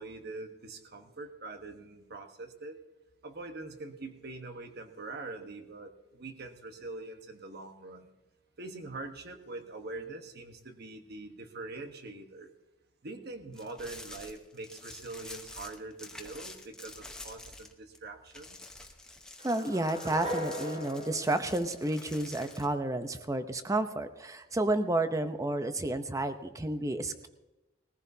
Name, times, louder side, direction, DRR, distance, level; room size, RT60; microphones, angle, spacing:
voice 1, 0.0-2.8 3.2-8.1 8.6-12.5 13.0-18.6, right 2 dB, 55° right, 5 dB, 1.2 m, -43 dB
sound 1, 13.5-18.0 18.3-22.7, left 2 dB, 5° left, 1.0 m, -48 dB
voice 2, 19.4-27.3, right 2 dB, 15° right, 9 dB, 0.7 m, -31 dB
sound 2, 19.4-22.5, equal, 35° right, 2.1 m, -39 dB
20.5 x 15.0 x 2.8 m, 1.0 s
head